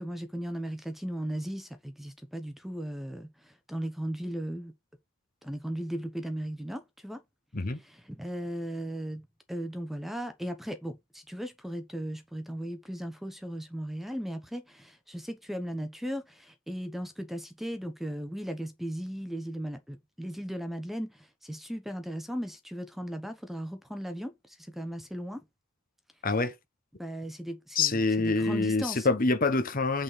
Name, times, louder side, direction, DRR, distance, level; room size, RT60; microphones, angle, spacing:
voice 1, 0.0-4.7 5.4-7.2 7.8-25.4 27.0-29.1, equal, ahead, 1.0 m, -37 dB
voice 2, 26.2-26.5 27.7-30.0, left 3 dB, 40° left, 1.1 m, -26 dB
8.4 x 4.2 x 5.0 m
head